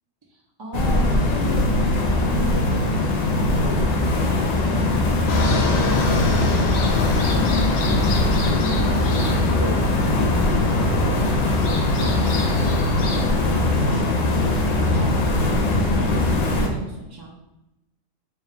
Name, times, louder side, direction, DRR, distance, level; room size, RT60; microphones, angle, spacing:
voice 1, 0.3-7.0 7.3-10.5 10.8-14.6 14.9-17.3, right 2 dB, 35° right, -3 dB, 0.3 m, -35 dB
sound 1, 0.7-16.7, left 2 dB, 85° left, 0.3 m, -21 dB
sound 2, 5.3-13.3, left 2 dB, 65° left, 0.8 m, -26 dB
3.5 x 2.8 x 3.2 m, 0.91 s
omnidirectional pair, 1.3 m